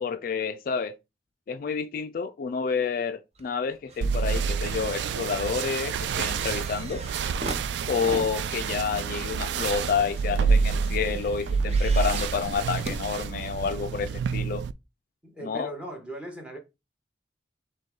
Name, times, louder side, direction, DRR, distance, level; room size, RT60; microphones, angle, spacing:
voice 1, 0.0-1.0 1.5-7.0 7.9-14.6 15.4-15.7, left 6 dB, 50° left, 0.3 m, -29 dB
sound 1, 3.4-4.1 4.4-13.8 14.6-14.7, right 2 dB, 35° right, 0.7 m, -41 dB
sound 2, 4.0-14.7, right 5 dB, 70° right, 0.3 m, -28 dB
sound 3, 7.2-7.4 7.9-8.7 9.2-10.4 10.9-11.2 11.5-11.9 12.1-12.7, left 2 dB, 15° left, 2.3 m, -54 dB
voice 2, 15.2-16.6, right 1 dB, 5° right, 1.1 m, -38 dB
6.4 x 2.2 x 3.7 m
head